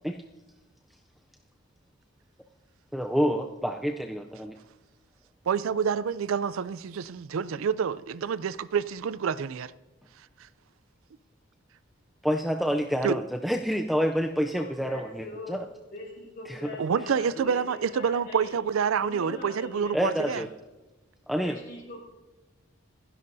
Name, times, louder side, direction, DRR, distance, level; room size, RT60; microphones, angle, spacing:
voice 1, 2.9-4.6 12.2-15.7 16.5-16.7 19.9-20.5 21.3-21.6, equal, ahead, 0.4 m, -28 dB
voice 2, 5.5-9.7 13.0-13.2 16.8-20.4, right 6 dB, 75° right, 0.4 m, -28 dB
voice 3, 14.5-15.6 15.9-18.5 19.0-20.4 21.4-22.0, left 2 dB, 40° left, 5.7 m, -42 dB
27.0 x 11.0 x 2.7 m
head